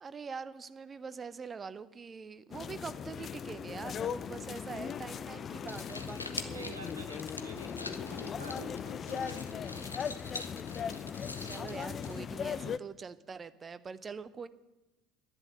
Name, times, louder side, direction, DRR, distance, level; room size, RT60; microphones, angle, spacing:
voice 1, 0.0-6.7 11.4-14.5, right 5 dB, 25° right, 14 dB, 0.7 m, -44 dB
sound 1, 2.5-12.8, left 7 dB, 35° left, 0.5 m, -38 dB
sound 2, 5.5-12.5, left 2 dB, 85° left, 0.7 m, -46 dB
voice 2, 6.5-10.0 11.1-11.3, right 2 dB, 85° right, 2 dB, 1.8 m, -48 dB
11.0 x 10.5 x 7.0 m, 1.0 s
figure-of-eight pair, 70°, 0 cm